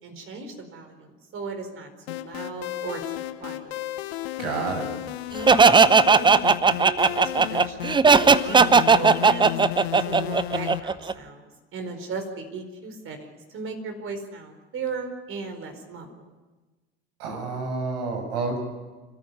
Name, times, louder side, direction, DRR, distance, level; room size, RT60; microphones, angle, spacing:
voice 1, 0.0-3.0 3.4-3.8 5.3-9.6 10.0-16.1, right 4 dB, 40° right, 6 dB, 4.5 m, -36 dB
sound 1, 2.1-10.8, left 14 dB, 70° left, 1.3 m, -33 dB
voice 2, 4.4-4.9 17.2-18.6, right 3 dB, 65° right, 3 dB, 7.1 m, -29 dB
Laughter, 5.5-11.1, right 5 dB, 15° right, 0.7 m, -16 dB
26.0 x 14.0 x 9.6 m, 1.3 s
hypercardioid pair, 80°, 33 cm